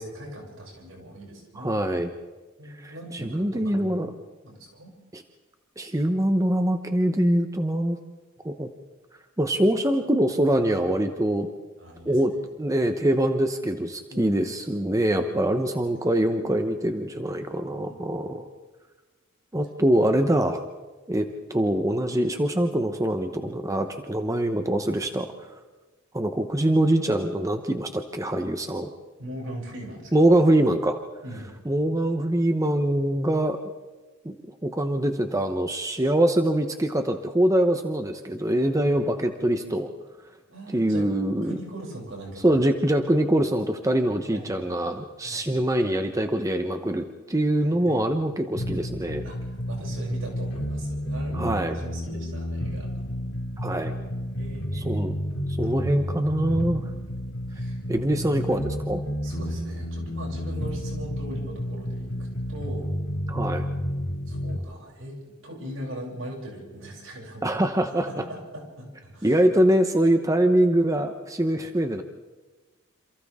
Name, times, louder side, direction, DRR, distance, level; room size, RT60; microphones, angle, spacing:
voice 1, 0.0-1.7 2.6-4.1 4.4-4.9 10.8-11.2 11.8-12.2 14.1-14.3 15.9-16.0 17.9-18.2 29.2-30.2 31.2-31.5 40.5-41.1 41.4-42.6 44.3-45.0 45.2-45.7 47.6-48.2 49.2-52.9 54.4-55.0 55.6-56.0 56.7-57.2 57.5-58.2 59.2-62.9 64.3-67.6 68.1-69.4 70.2-70.3 71.5-71.6, right 1 dB, 70° right, -1 dB, 7.6 m, -40 dB
voice 2, 1.6-2.1 2.8-4.1 5.1-5.2 5.8-8.0 8.4-8.7 9.4-11.5 12.0-12.3 12.6-18.5 19.5-20.6 21.1-21.2 21.5-25.5 26.1-28.9 30.1-31.0 31.7-33.6 34.2-34.3 34.6-39.9 40.7-41.5 42.4-49.2 51.3-51.8 53.6-53.9 54.7-55.1 55.6-56.9 57.9-59.0 63.3-63.6 67.4-68.3 69.2-72.0, right 1 dB, 15° right, 6 dB, 0.9 m, -24 dB
sound 1, 48.6-64.6, equal, 90° left, 2.7 m, -31 dB
28.5 x 27.5 x 3.7 m, 1.2 s
head